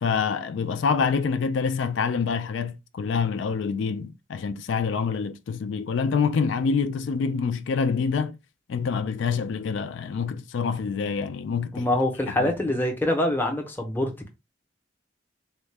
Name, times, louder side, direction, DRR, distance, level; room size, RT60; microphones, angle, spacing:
voice 1, 0.0-8.4 8.7-11.9 12.4-12.5, left 5 dB, 80° left, 0.3 m, -26 dB
voice 2, 11.7-14.3, left 1 dB, 10° left, 0.6 m, -25 dB
3.6 x 2.1 x 3.2 m
head